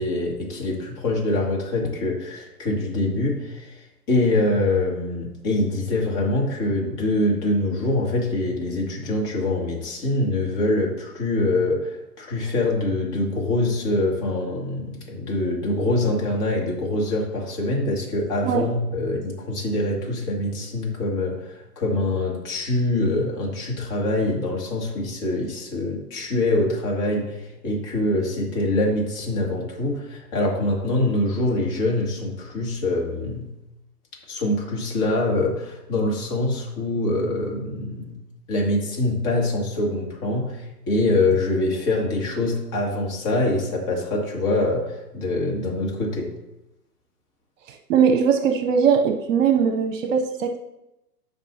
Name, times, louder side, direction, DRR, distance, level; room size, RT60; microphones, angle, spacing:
voice 1, 0.0-33.5 34.3-38.2 38.5-46.3, left 2 dB, 35° left, -1 dB, 2.6 m, -24 dB
voice 2, 47.7-50.6, right 7 dB, 55° right, 6 dB, 0.9 m, -20 dB
12.5 x 5.4 x 2.9 m, 0.93 s
hypercardioid pair, 120°, 47 cm